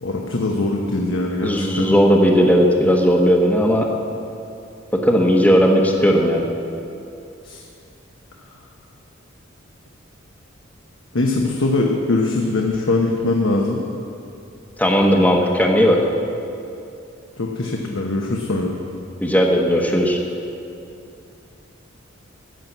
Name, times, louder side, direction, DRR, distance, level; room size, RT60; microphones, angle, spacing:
voice 1, 0.0-1.9 7.4-7.6 11.1-13.8 17.4-18.7, left 2 dB, 80° left, 0 dB, 1.0 m, -22 dB
voice 2, 1.4-3.9 4.9-6.4 14.8-16.0 19.2-20.2, equal, 10° left, 0 dB, 1.0 m, -16 dB
14.5 x 6.1 x 8.0 m, 2.7 s
head